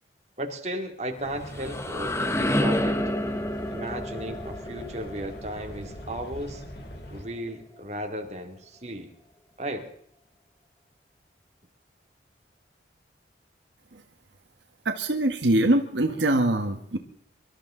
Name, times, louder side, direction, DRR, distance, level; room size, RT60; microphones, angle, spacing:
voice 1, 0.4-3.0 3.7-6.6 7.1-9.1 9.6-9.9, right 1 dB, 40° right, 3 dB, 2.4 m, -35 dB
sound 1, 1.2-7.3, equal, 60° left, 3.2 m, -42 dB
sound 2, 1.2-7.0, left 1 dB, 15° left, 1.0 m, -30 dB
voice 2, 14.8-17.0, right 1 dB, 75° right, 6 dB, 1.4 m, -23 dB
24.5 x 13.0 x 3.8 m, 0.66 s
head